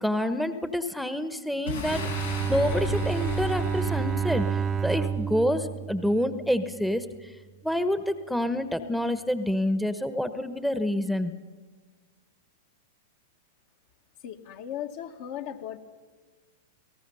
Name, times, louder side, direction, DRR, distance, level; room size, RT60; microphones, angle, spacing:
voice 1, 0.0-2.0 2.5-7.1 7.6-11.3, left 1 dB, ahead, 10 dB, 1.1 m, -27 dB
Boom, 1.7-5.3, left 3 dB, 90° left, 5.1 m, -35 dB
Bowed string instrument, 1.8-6.8, right 7 dB, 20° right, 0.8 m, -30 dB
voice 2, 14.2-15.8, left 10 dB, 55° left, 5 dB, 1.9 m, -37 dB
28.0 x 18.0 x 5.6 m, 1.5 s
hypercardioid pair, 105°, 0 cm